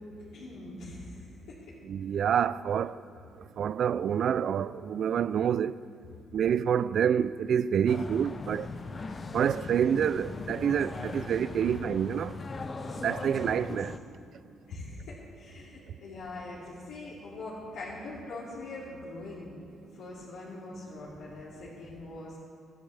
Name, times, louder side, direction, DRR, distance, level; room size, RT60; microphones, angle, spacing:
voice 1, 0.3-1.7 13.7-13.9 14.7-19.5 19.9-22.4, left 2 dB, 90° left, 2.7 m, -42 dB
voice 2, 1.9-3.0 3.6-5.8 6.3-8.7 9.3-12.4 13.0-13.9, right 8 dB, 65° right, 0.4 m, -27 dB
sound 1, 7.9-14.0, left 3 dB, 35° left, 0.8 m, -39 dB
19.5 x 13.0 x 3.5 m
cardioid pair, 90°, 0 cm